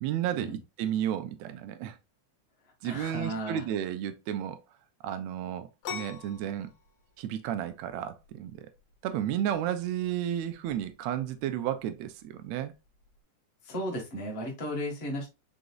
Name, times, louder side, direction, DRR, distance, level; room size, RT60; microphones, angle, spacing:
voice 1, 0.0-2.0 2.8-4.6 5.0-6.7 7.2-8.7 9.0-12.7, right 10 dB, 80° right, 1.7 m, -32 dB
voice 2, 2.8-3.6 13.6-15.3, equal, 30° left, 1.1 m, -35 dB
sound 1, 5.8-13.2, left 7 dB, 75° left, 2.1 m, -47 dB
5.1 x 3.9 x 2.3 m
omnidirectional pair, 3.3 m